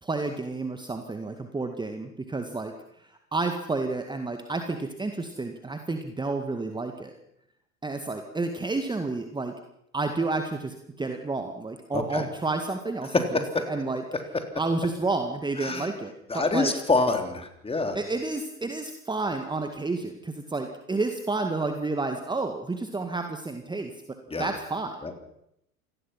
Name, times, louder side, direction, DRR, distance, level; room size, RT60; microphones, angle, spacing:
voice 1, 0.0-7.1 7.8-9.5 9.9-14.0 14.6-16.7 17.9-23.9 24.4-25.0, right 3 dB, 10° right, 6 dB, 2.0 m, -30 dB
voice 2, 11.9-12.3 13.1-13.7 15.6-15.9 16.3-18.0 24.3-24.5 25.0-25.1, left 3 dB, 15° left, 6 dB, 3.6 m, -26 dB
28.0 x 19.0 x 5.9 m, 0.78 s
figure-of-eight pair, 80°, 44 cm